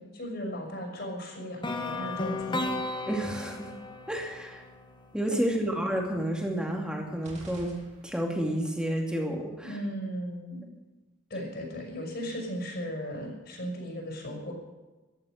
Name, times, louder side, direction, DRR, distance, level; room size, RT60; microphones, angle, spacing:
voice 1, 0.0-2.7 9.6-10.7 11.3-14.5, equal, 50° left, 1 dB, 6.1 m, -36 dB
sound 1, 1.6-5.6, left 2 dB, 20° left, 1.2 m, -35 dB
voice 2, 3.1-3.7 4.1-4.6 5.1-7.7 8.0-9.7, right 1 dB, 5° right, 1 dB, 2.5 m, -30 dB
sound 2, 7.2-8.5, right 1 dB, 35° right, 3.4 m, -48 dB
15.0 x 13.0 x 6.6 m, 1.2 s
head